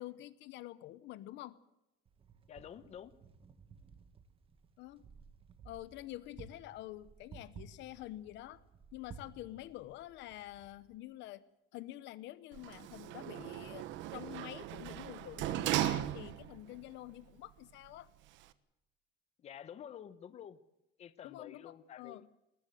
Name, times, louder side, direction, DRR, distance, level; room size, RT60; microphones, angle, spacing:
voice 1, 0.0-1.6 4.8-5.0 5.6-8.6 8.9-11.4 11.7-18.1 21.2-22.3, left 15 dB, 60° left, 16 dB, 0.9 m, -47 dB
Wind, 2.1-11.0, right 6 dB, 25° right, 1.6 m, -56 dB
voice 2, 2.5-3.1 19.4-20.6 21.0-22.2, left 9 dB, 30° left, 13 dB, 1.0 m, -49 dB
Sliding door, 12.5-16.7 17.1-17.2, right 13 dB, 65° right, 1.2 m, -37 dB
20.5 x 19.5 x 7.9 m, 0.89 s
cardioid pair, 170°, 21 cm